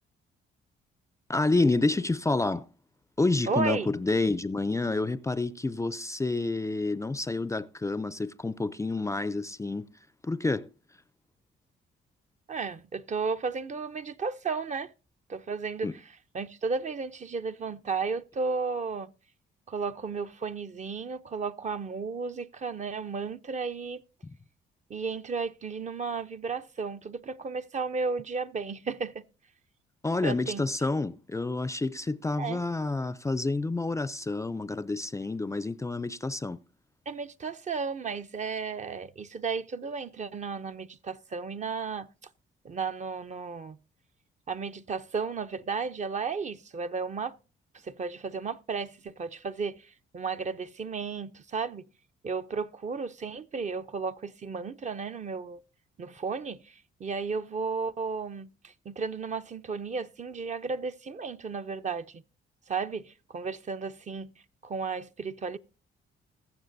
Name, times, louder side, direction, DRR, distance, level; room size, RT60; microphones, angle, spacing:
voice 1, 1.3-2.7 3.2-9.9 10.2-10.7 15.8-15.9 30.0-36.6, left 3 dB, 15° left, 0.4 m, -29 dB
voice 2, 3.5-3.9 12.5-14.9 15.3-16.0 16.3-19.1 19.7-24.0 24.9-29.2 30.2-30.6 32.4-32.6 37.1-42.1 42.6-43.8 44.5-47.3 47.8-51.9 52.2-55.6 56.0-62.2 62.7-64.3 64.6-65.6, right 5 dB, 35° right, 0.6 m, -34 dB
21.5 x 7.2 x 2.6 m
cardioid pair, 90°, 20 cm